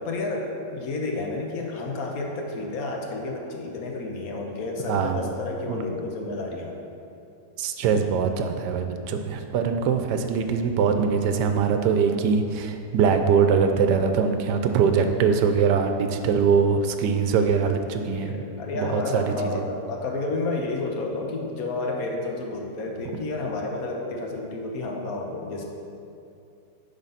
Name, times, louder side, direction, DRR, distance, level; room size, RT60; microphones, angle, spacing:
voice 1, 0.0-6.7 17.9-25.7, left 2 dB, 65° left, 1 dB, 1.2 m, -31 dB
voice 2, 4.9-5.2 5.7-5.9 7.6-18.3 18.7-19.6, right 6 dB, 80° right, 6 dB, 1.2 m, -22 dB
9.0 x 3.8 x 5.6 m, 2.6 s
omnidirectional pair, 1.8 m